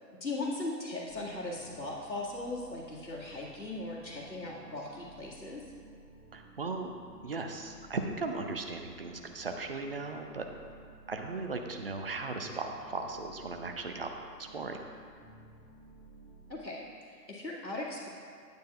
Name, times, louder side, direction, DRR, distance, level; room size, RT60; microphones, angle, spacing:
voice 1, 0.2-5.6 16.5-18.1, left 2 dB, 85° left, -5 dB, 2.1 m, -38 dB
sound 1, 1.1-16.6, right 2 dB, 10° left, 1.2 m, -55 dB
voice 2, 6.3-6.9 7.2-10.5 11.1-14.1 14.4-14.9, right 3 dB, 40° right, 4 dB, 0.5 m, -37 dB
9.4 x 9.1 x 2.4 m, 2.1 s
figure-of-eight pair, 130°, 50 cm